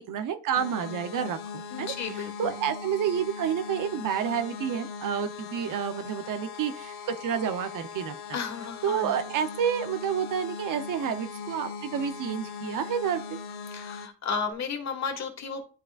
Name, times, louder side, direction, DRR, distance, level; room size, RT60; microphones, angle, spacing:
voice 1, 0.0-8.4 8.8-13.4, right 8 dB, 65° right, 8 dB, 0.8 m, -30 dB
sound 1, 0.6-14.1, left 5 dB, 70° left, 1.3 m, -40 dB
voice 2, 1.7-2.5 8.3-9.1 13.7-15.8, left 5 dB, 50° left, 4 dB, 1.7 m, -33 dB
11.0 x 3.8 x 2.5 m, 0.35 s
cardioid pair, 115°, 34 cm